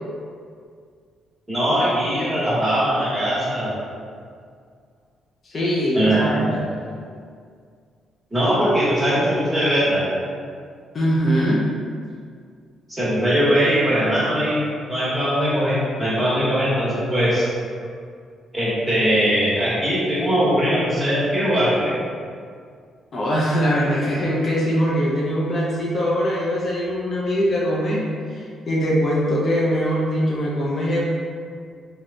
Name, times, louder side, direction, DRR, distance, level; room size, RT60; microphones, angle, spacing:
voice 1, 1.5-3.7 5.9-6.2 6.5-6.6 8.3-10.0 12.9-17.5 18.5-21.9, equal, 10° right, -10 dB, 1.3 m, -20 dB
voice 2, 5.5-6.6 10.9-11.6 23.1-28.0 28.3-31.0, equal, 45° left, -5 dB, 0.5 m, -22 dB
3.4 x 2.3 x 2.6 m, 2.1 s
cardioid pair, 90°, 0 cm